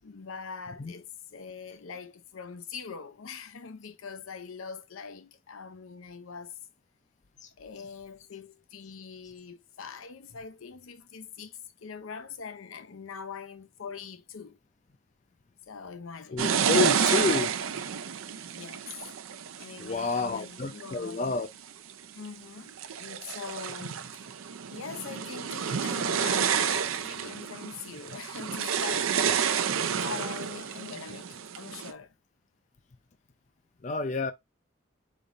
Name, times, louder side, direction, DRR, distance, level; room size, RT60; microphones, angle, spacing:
voice 1, 0.0-6.6 7.6-14.6 15.7-16.6 18.5-19.0 19.6-21.3 22.1-24.3 24.7-29.4 30.0-32.1, left 5 dB, 85° left, 0.6 m, -42 dB
voice 2, 16.3-17.5 19.8-21.5 33.8-34.3, left 4 dB, 35° left, 0.4 m, -29 dB
sound 1, 16.4-21.1 21.7-22.3 22.7-31.9, right 7 dB, 85° right, 0.5 m, -30 dB
5.2 x 2.5 x 3.9 m
head